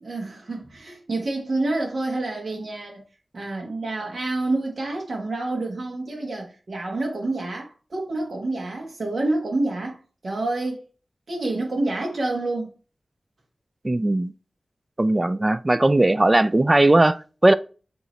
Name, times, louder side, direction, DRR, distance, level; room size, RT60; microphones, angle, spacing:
voice 1, 0.0-3.0 3.3-10.8 11.3-12.7, right 2 dB, 65° right, 1.6 m, -28 dB
voice 2, 13.8-14.3 15.0-17.5, right 2 dB, 25° right, 0.4 m, -18 dB
8.1 x 3.0 x 4.3 m
wide cardioid pair, 85°, 0 cm